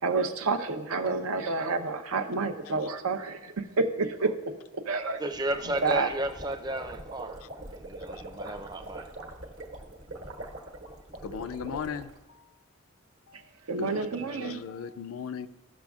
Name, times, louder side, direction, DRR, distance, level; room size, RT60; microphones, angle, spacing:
voice 1, 0.0-4.4 4.7-5.2 5.8-6.1 13.7-14.6, right 4 dB, 90° right, 0.7 m, -29 dB
voice 2, 5.2-9.1, right 1 dB, 20° right, 0.4 m, -33 dB
sound 1, 5.3-12.2, right 2 dB, 60° right, 1.2 m, -43 dB
voice 3, 11.2-12.5 13.3-13.4 13.8-15.5, left 6 dB, 80° left, 0.4 m, -38 dB
14.5 x 6.2 x 2.3 m
head